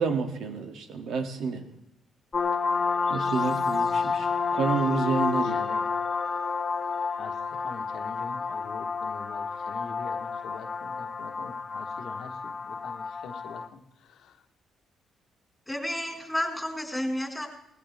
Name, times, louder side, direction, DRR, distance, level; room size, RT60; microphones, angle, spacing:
voice 1, 0.0-1.6 3.1-5.6, right 5 dB, 75° right, 5 dB, 2.5 m, -29 dB
sound 1, 2.3-13.7, left 5 dB, 40° left, 1.2 m, -30 dB
voice 2, 5.4-5.9 6.8-14.4, left 6 dB, 80° left, 5 dB, 1.6 m, -45 dB
voice 3, 15.7-17.5, left 1 dB, 5° left, 1 dB, 4.9 m, -31 dB
19.5 x 16.5 x 3.6 m, 0.80 s
cardioid pair, 90°, 0 cm